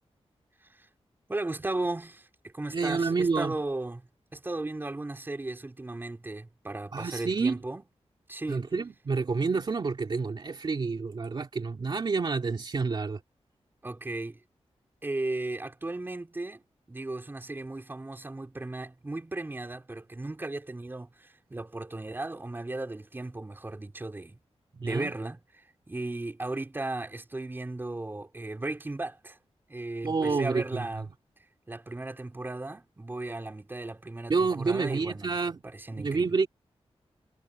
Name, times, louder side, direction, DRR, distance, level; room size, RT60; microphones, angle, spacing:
voice 1, 1.3-7.8 8.3-8.7 13.8-14.4 15.0-24.4 24.8-25.4 25.9-29.4 29.7-31.1 31.7-35.4 35.6-36.3, right 2 dB, 20° right, 4.1 m, -36 dB
voice 2, 2.7-3.6 6.9-7.6 8.5-13.2 24.7-25.1 30.0-31.1 34.3-35.6 35.9-36.5, right 4 dB, 45° right, 2.5 m, -29 dB
wide cardioid pair, 175°, 11 cm